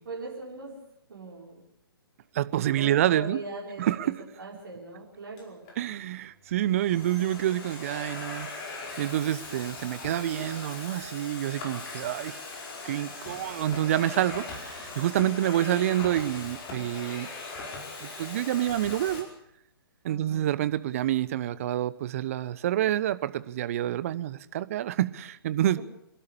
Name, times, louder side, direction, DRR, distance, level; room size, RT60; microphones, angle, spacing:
voice 1, 0.1-0.8 1.1-1.6 2.7-5.7 20.1-20.5, right 3 dB, 55° right, -3 dB, 5.2 m, -40 dB
voice 2, 2.3-3.4 3.8-4.1 5.8-8.5 9.0-12.4 12.8-17.3 18.0-19.3 20.0-25.8, right 12 dB, 35° right, 15 dB, 1.0 m, -28 dB
Domestic sounds home sounds, 5.4-5.8 6.5-19.2, left 3 dB, 25° left, 5.0 m, -40 dB
26.5 x 12.5 x 8.5 m, 0.76 s
figure-of-eight pair, 130°, 13 cm